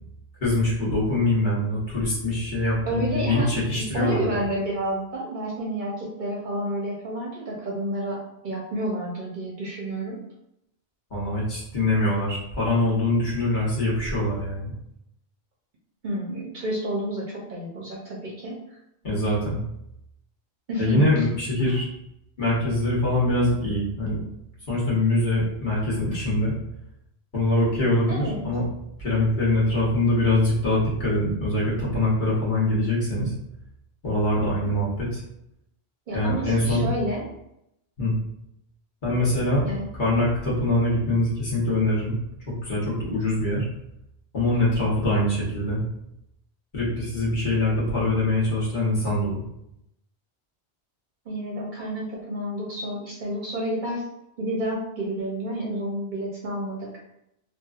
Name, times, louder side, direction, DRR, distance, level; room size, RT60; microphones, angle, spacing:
voice 1, 0.4-4.4 11.1-14.7 19.0-19.6 20.8-21.9 22.4-24.2 24.7-26.5 27.3-28.6 29.0-33.3 34.0-35.2 36.1-36.8 38.0-38.1 39.0-39.6 39.9-42.1 42.5-43.7 44.3-45.8 46.7-49.4, left 1 dB, 50° left, -7 dB, 1.1 m, -23 dB
voice 2, 2.9-10.2 16.0-18.6 20.7-21.2 28.1-28.4 34.6-34.7 36.1-37.2 38.0-38.1 39.6-39.9 43.1-43.3 51.3-54.1 54.4-56.9, right 1 dB, 55° right, -3 dB, 0.7 m, -30 dB
2.9 x 2.4 x 2.3 m, 0.80 s
omnidirectional pair, 1.1 m